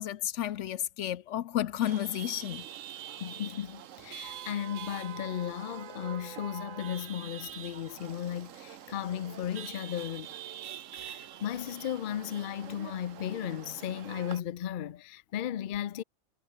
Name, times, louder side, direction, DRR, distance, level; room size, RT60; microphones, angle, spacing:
voice 1, 0.0-2.6, left 11 dB, 75° left, 1.0 m, -32 dB
Chatter / Vehicle horn car horn honking / Traffic noise roadway noise, 1.8-14.4, right 11 dB, 85° right, 1.2 m, -45 dB
voice 2, 3.2-10.3 10.9-16.0, left 10 dB, 55° left, 0.6 m, -35 dB
omnidirectional pair, 1.3 m